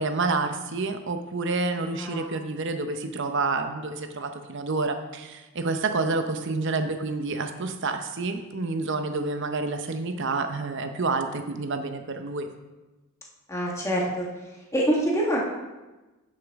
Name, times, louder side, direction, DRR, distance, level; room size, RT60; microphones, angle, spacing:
voice 1, 0.0-12.5, right 3 dB, 55° right, 7 dB, 0.7 m, -28 dB
voice 2, 2.0-2.3 13.5-14.3 14.7-15.4, equal, 15° left, -3 dB, 1.4 m, -25 dB
10.0 x 6.5 x 3.5 m, 1.1 s
head